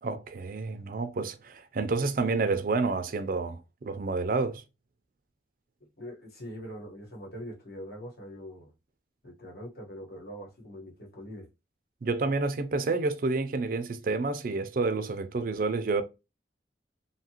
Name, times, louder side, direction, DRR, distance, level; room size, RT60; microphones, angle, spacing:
voice 1, 0.0-4.6 12.0-16.0, right 3 dB, 50° right, 0.4 m, -29 dB
voice 2, 6.0-8.7 9.2-11.5, equal, 60° left, 1.2 m, -43 dB
2.8 x 2.4 x 2.8 m
head